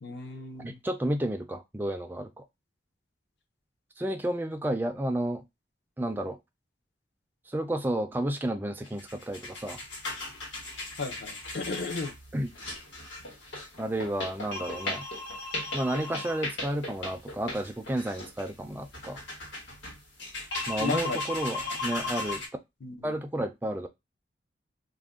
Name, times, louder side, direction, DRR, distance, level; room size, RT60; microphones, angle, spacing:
voice 1, 0.0-0.8 11.0-12.1 20.8-21.3 21.6-21.8 22.8-23.1, left 4 dB, 60° left, 0.6 m, -35 dB
voice 2, 0.6-2.4 4.0-5.4 6.0-6.4 7.5-9.8 12.3-12.5 13.8-15.1 15.7-19.2 20.7-22.4 23.0-23.9, right 1 dB, 10° right, 0.3 m, -31 dB
sound 1, 8.8-22.5, left 2 dB, 85° left, 1.2 m, -37 dB
2.4 x 2.1 x 3.5 m
head